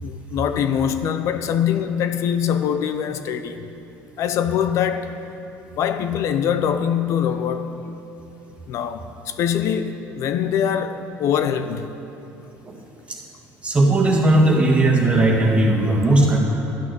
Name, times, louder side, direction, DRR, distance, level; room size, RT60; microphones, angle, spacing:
voice 1, 0.0-3.7 4.2-5.2 5.8-7.9 8.7-11.9, left 8 dB, 60° left, 0.7 m, -23 dB
voice 2, 13.6-16.4, right 2 dB, 20° right, 1.9 m, -17 dB
12.0 x 6.2 x 9.4 m
cardioid pair, 115°, 6 cm